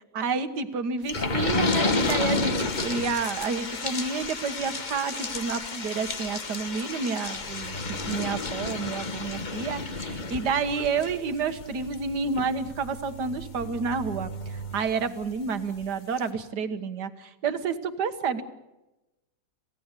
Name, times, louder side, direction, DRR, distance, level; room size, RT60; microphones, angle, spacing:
voice 1, 0.1-18.4, right 5 dB, 60° right, 10 dB, 1.9 m, -30 dB
sound 1, 1.1-15.4 15.8-15.9 16.2-16.3, left 3 dB, 30° left, 1.0 m, -31 dB
27.5 x 17.0 x 8.3 m, 1.0 s
omnidirectional pair, 2.0 m